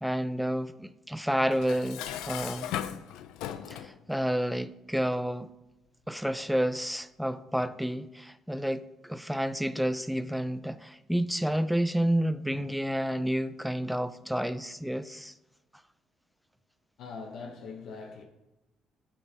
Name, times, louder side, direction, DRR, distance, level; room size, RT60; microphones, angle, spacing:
voice 1, 0.0-2.8 3.7-5.5 6.1-15.3, equal, ahead, 0.4 m, -30 dB
Dishes pots and pans, 1.5-4.0, left 10 dB, 85° left, 0.3 m, -37 dB
voice 2, 17.0-18.2, left 4 dB, 70° left, 0.8 m, -41 dB
9.8 x 4.3 x 2.8 m
supercardioid pair, 70°, 0 cm